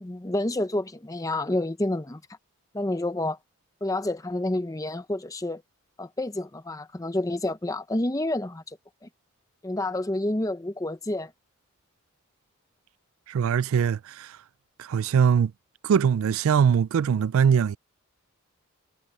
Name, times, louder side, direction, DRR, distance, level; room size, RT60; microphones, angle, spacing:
voice 1, 0.0-2.2 2.7-3.4 3.8-5.6 6.0-8.8 9.6-11.3, left 1 dB, 15° left, 0.6 m, -29 dB
voice 2, 13.3-14.4 14.8-15.5 15.8-17.8, right 7 dB, 70° right, 0.3 m, -22 dB
head